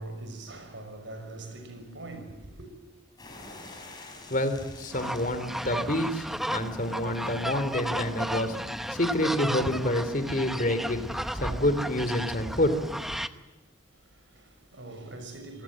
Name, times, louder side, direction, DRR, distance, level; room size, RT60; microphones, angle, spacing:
voice 1, 0.0-2.7 13.9-15.6, right 2 dB, 70° right, 6.1 m, -42 dB
sound 1, 3.2-10.2, left 2 dB, 20° left, 5.9 m, -51 dB
voice 2, 4.3-11.0 11.3-12.8, left 1 dB, 45° left, 3.2 m, -28 dB
sound 2, 4.9-13.3, equal, ahead, 0.8 m, -34 dB
26.5 x 19.5 x 7.6 m
head